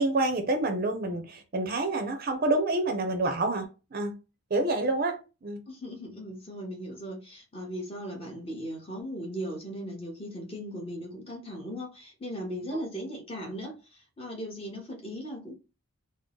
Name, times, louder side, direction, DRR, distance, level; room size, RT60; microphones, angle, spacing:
voice 1, 0.0-4.2 4.5-5.6, right 2 dB, 40° right, 0.6 m, -28 dB
voice 2, 5.7-15.5, equal, 25° left, 1.1 m, -38 dB
3.8 x 2.0 x 3.8 m
head